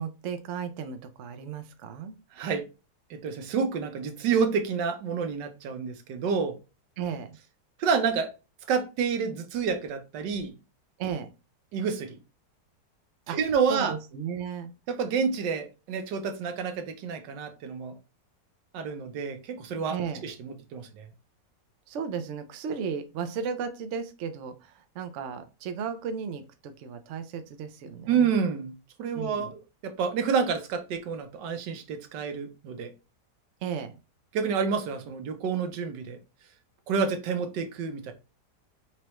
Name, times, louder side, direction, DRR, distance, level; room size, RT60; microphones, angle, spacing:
voice 1, 0.0-2.2 7.0-7.4 11.0-11.3 13.3-13.4 13.7-14.7 19.9-20.2 21.9-28.3 29.1-29.5 33.6-34.0, right 6 dB, 65° right, 0.7 m, -35 dB
voice 2, 2.3-2.7 3.1-6.6 7.8-8.3 8.7-10.5 11.7-12.2 13.3-13.9 14.9-17.9 18.7-20.0 20.2-21.1 28.1-32.9 34.3-36.2 36.9-38.1, right 6 dB, 80° right, 1.4 m, -29 dB
4.5 x 3.1 x 2.9 m
omnidirectional pair, 1.9 m